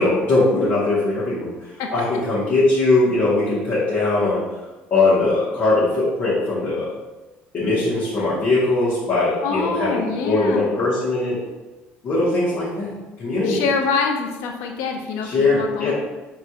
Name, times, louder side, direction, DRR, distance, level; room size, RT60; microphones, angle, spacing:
voice 1, 0.0-4.4 4.9-6.9 7.5-11.4 12.0-12.9 13.2-13.6 15.2-15.9, left 2 dB, 45° left, -11 dB, 1.4 m, -20 dB
voice 2, 9.4-10.8 13.4-15.9, left 5 dB, 85° left, 3 dB, 0.6 m, -25 dB
4.7 x 2.9 x 2.5 m, 1.1 s
cardioid pair, 110°, 4 cm